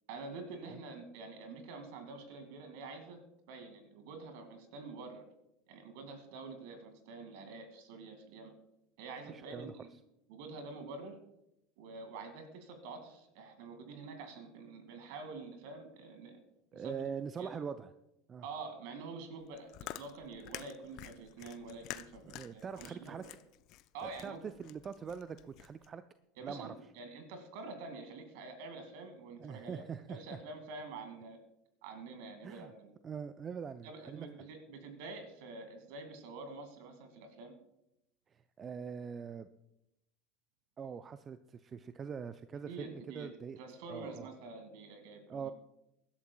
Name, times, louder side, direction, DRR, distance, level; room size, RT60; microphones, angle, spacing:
voice 1, 0.1-3.2 3.5-5.2 5.7-8.5 9.0-9.9 10.3-11.2 11.8-16.4 16.7-17.0 17.4-17.5 18.4-23.3 23.9-24.4 26.4-31.4 31.8-32.9 33.8-37.5 42.7-43.3 43.6-45.5, right 3 dB, 65° right, 7 dB, 2.2 m, -47 dB
voice 2, 9.3-9.7 16.7-17.9 18.3-18.4 22.2-23.2 24.0-26.0 26.4-26.7 29.4-30.4 32.4-32.7 33.0-34.3 38.3-39.5 40.8-43.6 43.9-44.3 45.3-45.5, right 6 dB, 30° right, 12 dB, 0.5 m, -43 dB
Chewing mastication, 19.4-25.9, left 15 dB, 55° left, 0.5 m, -49 dB
23.5 x 11.5 x 2.3 m, 0.86 s
hypercardioid pair, 75°, 0 cm